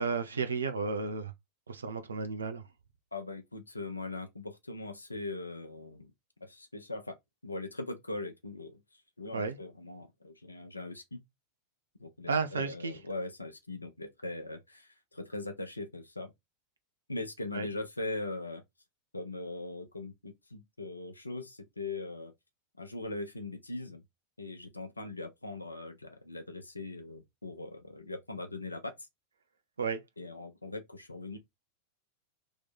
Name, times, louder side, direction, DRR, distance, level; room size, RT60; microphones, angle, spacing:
voice 1, 0.0-1.3 1.7-2.6 9.3-9.6 12.3-13.0 17.5-17.7 29.8-30.0, right 4 dB, 70° right, 0.5 m, -33 dB
voice 2, 3.1-6.1 6.4-7.2 7.4-8.8 9.2-11.2 12.0-16.3 17.1-18.6 19.1-22.3 22.8-24.0 24.4-29.1 30.2-31.4, left 2 dB, 80° left, 0.7 m, -40 dB
3.1 x 3.0 x 4.0 m
figure-of-eight pair, 90°, 0 cm